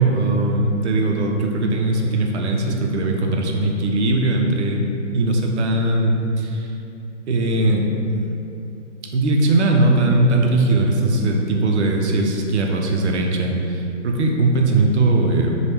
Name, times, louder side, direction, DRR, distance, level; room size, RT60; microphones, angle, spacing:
voice 1, 0.0-6.7 7.3-8.4 9.1-15.6, right 2 dB, 65° right, 1 dB, 0.5 m, -19 dB
2.8 x 2.2 x 3.3 m, 2.8 s
hypercardioid pair, 170°, 37 cm